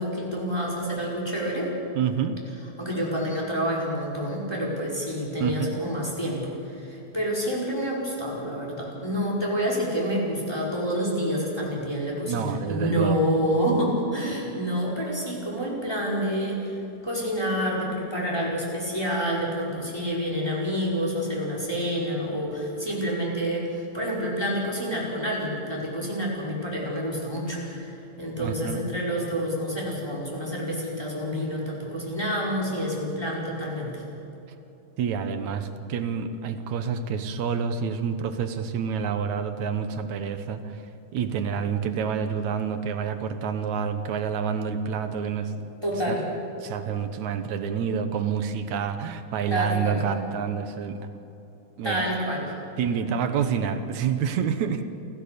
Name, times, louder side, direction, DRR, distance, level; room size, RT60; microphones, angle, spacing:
voice 1, 0.0-1.7 2.8-16.8 17.0-34.0 45.8-46.2 49.5-50.0 51.8-52.5, equal, 5° left, -4 dB, 5.0 m, -28 dB
voice 2, 2.0-2.4 5.4-5.7 12.3-13.2 28.4-28.8 35.0-40.8 41.1-45.5 46.1-46.2 46.6-51.1 51.8-52.0 52.8-54.8, right 7 dB, 65° right, 8 dB, 2.1 m, -28 dB
28.0 x 15.0 x 6.8 m, 3.0 s
omnidirectional pair, 4.3 m